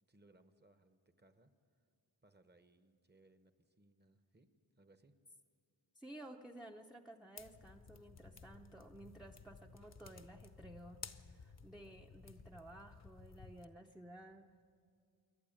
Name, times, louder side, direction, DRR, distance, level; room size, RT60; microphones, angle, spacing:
voice 1, 0.1-1.9 2.2-5.2, right 2 dB, 25° right, 9 dB, 1.1 m, -68 dB
voice 2, 5.9-14.5, right 1 dB, ahead, 1 dB, 0.7 m, -55 dB
sound 1, 7.4-13.6, left 5 dB, 40° left, 0.8 m, -56 dB
28.0 x 11.5 x 9.1 m, 2.3 s
wide cardioid pair, 105°, 40 cm